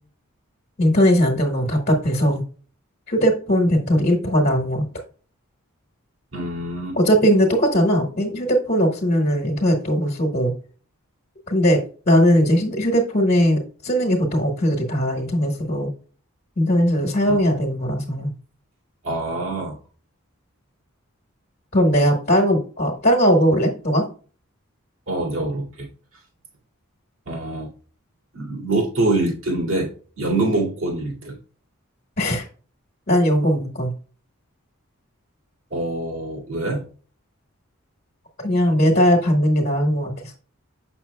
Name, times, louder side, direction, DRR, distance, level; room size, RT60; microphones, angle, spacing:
voice 1, 0.8-2.4 3.1-4.8 6.9-10.5 11.5-15.9 16.6-18.3 21.7-24.0 32.2-32.5 33.1-33.9 38.4-40.4, equal, 45° left, 1 dB, 1.2 m, -19 dB
voice 2, 6.3-7.0 17.2-17.4 19.0-19.8 25.1-25.9 27.3-27.7 28.3-29.9 30.2-31.4 35.7-36.9, right 2 dB, 65° right, -2 dB, 2.3 m, -25 dB
7.2 x 5.9 x 2.2 m, 0.40 s
head